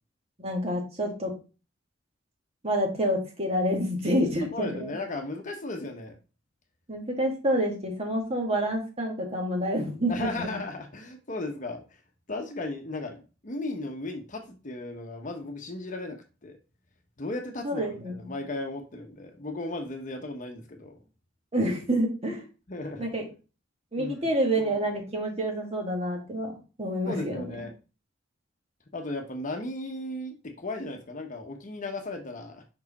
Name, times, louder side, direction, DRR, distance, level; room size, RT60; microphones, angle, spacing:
voice 1, 0.4-1.3 2.6-4.9 6.9-10.5 17.6-18.3 21.5-22.4 23.0-23.3 23.9-26.5 26.8-27.6, equal, 35° right, 0 dB, 1.9 m, -28 dB
voice 2, 4.5-6.2 10.1-11.8 12.3-13.2 13.4-16.6 17.2-17.9 18.1-21.0 22.7-23.1 24.0-24.3 27.1-27.7 28.9-32.6, left 2 dB, 40° left, 4 dB, 1.0 m, -35 dB
5.6 x 4.7 x 4.1 m, 0.33 s
head